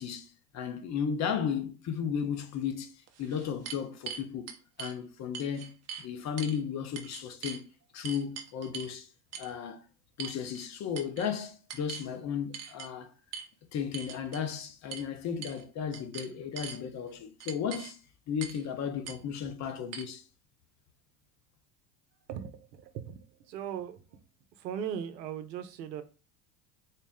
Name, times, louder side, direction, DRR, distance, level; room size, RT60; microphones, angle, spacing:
voice 1, 0.0-2.9 3.2-4.5 4.8-7.7 7.9-9.1 9.4-9.8 10.2-13.1 13.7-18.0 18.3-20.2, left 7 dB, 35° left, 0.7 m, -34 dB
sound 1, 2.4-2.5 3.1-5.0 5.3-6.1 6.4-6.6 7.0-7.6 8.0-8.9 9.3-9.5 10.2-10.7 11.0-11.3 11.7-12.1 12.5-12.9 13.3-13.5 13.9-14.4 14.9-15.1 15.4-15.6 15.9-16.8 17.4-17.9 18.4-18.6 19.1-19.2 19.9-20.0, right 7 dB, 30° right, 0.6 m, -42 dB
voice 2, 22.3-24.2 24.5-26.0, right 9 dB, 80° right, 0.7 m, -39 dB
4.1 x 2.1 x 3.5 m
hypercardioid pair, 85°, 49 cm